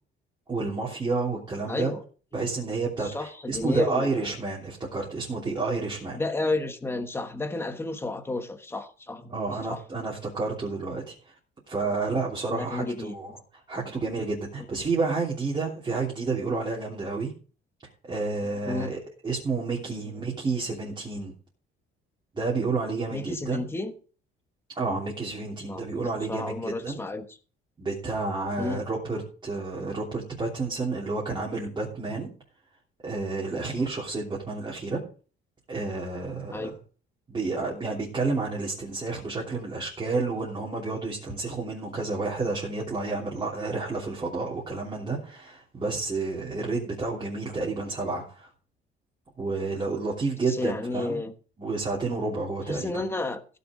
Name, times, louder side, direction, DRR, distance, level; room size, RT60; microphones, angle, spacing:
voice 1, 0.5-1.9 2.3-6.2 9.3-11.1 11.7-13.3 13.7-17.3 18.0-21.3 22.3-23.6 24.8-27.0 27.8-32.3 33.0-35.0 35.7-36.7 37.3-48.5 49.4-51.2 51.6-52.9, right 3 dB, 20° right, 3.1 m, -30 dB
voice 2, 1.7-2.0 3.0-4.4 6.1-9.3 9.7-9.8 12.5-13.2 18.4-18.9 20.0-20.1 23.1-23.9 25.7-27.4 28.6-28.8 33.8-33.9 36.5-36.7 50.5-51.3 52.7-53.4, left 2 dB, 10° left, 1.2 m, -32 dB
16.0 x 6.8 x 5.0 m
cardioid pair, 170°, 21 cm